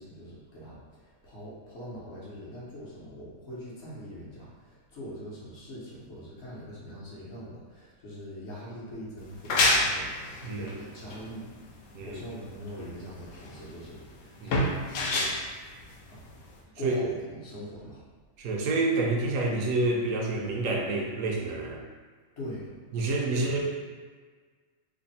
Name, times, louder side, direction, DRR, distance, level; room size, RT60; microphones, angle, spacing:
voice 1, 0.0-11.5 12.0-15.4 16.1-16.3 16.7-18.0 22.4-22.7 23.3-23.6, equal, 65° left, -7 dB, 1.2 m, -42 dB
sound 1, 9.2-16.6, left 2 dB, 85° left, 1.0 m, -29 dB
voice 2, 10.4-10.7 11.9-12.2 14.4-14.6 16.8-17.0 18.4-21.8 22.9-23.6, right 2 dB, 85° right, 0 dB, 1.0 m, -28 dB
3.3 x 2.1 x 4.0 m, 1.5 s
omnidirectional pair, 1.3 m